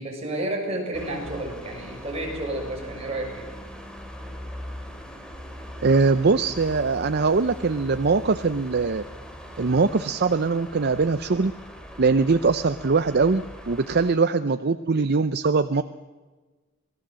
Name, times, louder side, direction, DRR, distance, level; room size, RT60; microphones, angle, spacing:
voice 1, 0.0-3.4, right 1 dB, 30° right, 0 dB, 6.8 m, -31 dB
sound 1, 0.9-14.1, equal, 5° left, 3.0 m, -40 dB
voice 2, 5.8-9.0 9.6-11.5 12.0-15.8, right 4 dB, 55° right, 10 dB, 0.7 m, -22 dB
27.0 x 19.5 x 7.6 m, 1.3 s
head